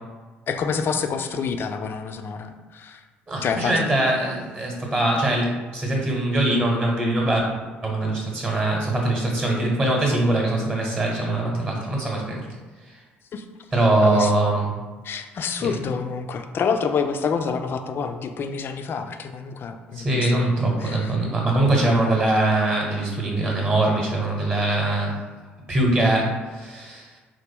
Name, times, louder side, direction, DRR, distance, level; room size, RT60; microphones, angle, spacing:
voice 1, 0.5-3.0 3.4-3.9 13.3-13.5 14.0-14.3 15.0-20.5 20.8-21.1, left 6 dB, 40° left, 6 dB, 0.3 m, -27 dB
voice 2, 3.3-7.4 7.8-12.4 13.7-14.7 15.6-15.7 19.9-25.1 25.7-27.1, right 2 dB, 20° right, -2 dB, 0.9 m, -22 dB
3.1 x 2.1 x 3.5 m, 1.3 s
hypercardioid pair, 55°, 6 cm